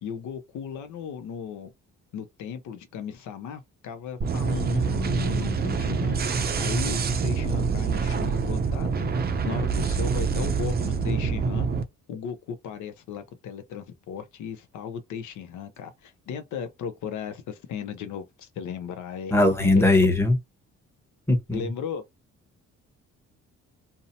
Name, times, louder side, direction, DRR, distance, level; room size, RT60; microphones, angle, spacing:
voice 1, 0.0-1.7 2.1-9.1 9.5-11.7 12.1-19.3 19.8-19.9 21.5-22.0, left 7 dB, 75° left, 0.6 m, -36 dB
sound 1, 4.2-11.8, right 5 dB, 30° right, 0.5 m, -26 dB
voice 2, 19.3-20.4 21.3-21.7, left 2 dB, 10° left, 0.9 m, -20 dB
2.7 x 2.1 x 2.7 m
cardioid pair, 90°, 30 cm